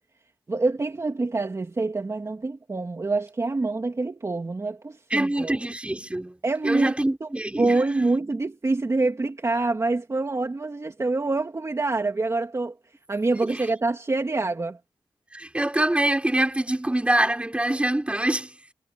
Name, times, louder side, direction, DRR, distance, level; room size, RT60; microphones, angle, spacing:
voice 1, 0.5-5.5 6.4-6.9 7.2-7.3 7.6-12.7 13.1-14.8, right 3 dB, 30° right, 3.0 m, -26 dB
voice 2, 5.1-6.4 6.6-7.9 15.3-18.5, right 1 dB, 10° right, 5.2 m, -24 dB
wide cardioid pair, 125°, 9 cm